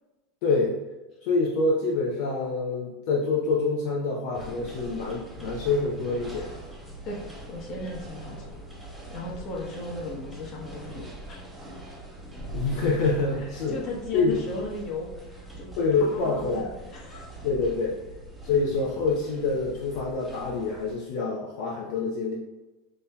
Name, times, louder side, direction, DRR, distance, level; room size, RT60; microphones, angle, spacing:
voice 1, 0.4-0.8 1.2-6.5 12.5-13.8 14.1-14.4 15.8-16.7 17.4-18.0 18.4-22.3, left 3 dB, 60° left, -3 dB, 0.6 m, -26 dB
sound 1, 4.3-20.9, right 1 dB, ahead, 0.8 m, -42 dB
voice 2, 7.5-8.5 9.1-11.4 13.7-15.7 16.0-16.2 16.5-17.3, left 2 dB, 40° left, -2 dB, 1.1 m, -36 dB
5.3 x 2.8 x 2.2 m, 1.1 s
supercardioid pair, 145°, 0 cm